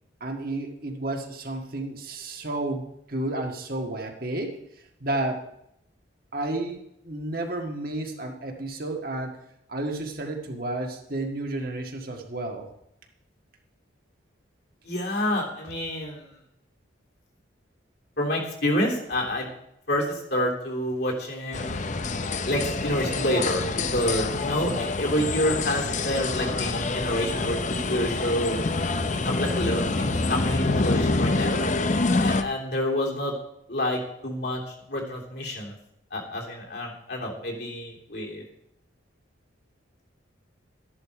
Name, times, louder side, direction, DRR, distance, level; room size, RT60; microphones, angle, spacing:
voice 1, 0.2-4.6 5.0-5.5 6.3-9.4 9.7-12.7, right 2 dB, 50° right, 3 dB, 1.8 m, -31 dB
voice 2, 14.8-16.3 18.2-19.5 19.9-21.7 22.4-28.6 29.1-31.6 32.2-33.3 33.7-34.6 34.9-35.8 36.1-38.4, equal, 55° left, -1 dB, 3.2 m, -28 dB
sound 1, 21.5-32.4, left 3 dB, 40° left, 0.7 m, -26 dB
13.5 x 11.0 x 4.9 m, 0.77 s
head